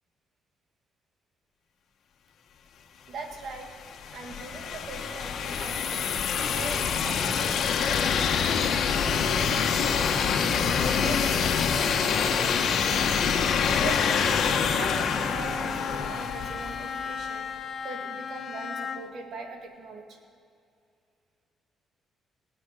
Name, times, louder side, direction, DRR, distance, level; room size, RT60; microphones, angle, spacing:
voice 1, 3.1-3.8 4.1-8.8 9.1-13.2 13.7-17.5 17.8-20.2, right 3 dB, 70° right, 4 dB, 2.0 m, -40 dB
sound 1, 3.4-17.1, left 6 dB, 65° left, 1.2 m, -26 dB
Bowed string instrument, 14.8-19.3, left 6 dB, 50° left, 1.0 m, -36 dB
17.5 x 9.5 x 6.8 m, 2.4 s
cardioid pair, 90°, 0 cm